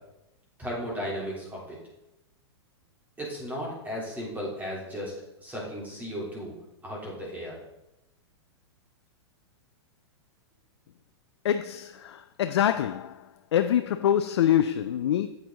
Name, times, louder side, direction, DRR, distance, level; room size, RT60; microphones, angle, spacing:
voice 1, 0.6-1.8 3.2-5.1 5.4-6.6 6.8-7.6, equal, 10° right, 3.5 m, -35 dB
voice 2, 11.4-13.1 13.5-15.3, left 10 dB, 75° left, 0.4 m, -25 dB
8.4 x 8.0 x 4.0 m
hypercardioid pair, 115°, 14 cm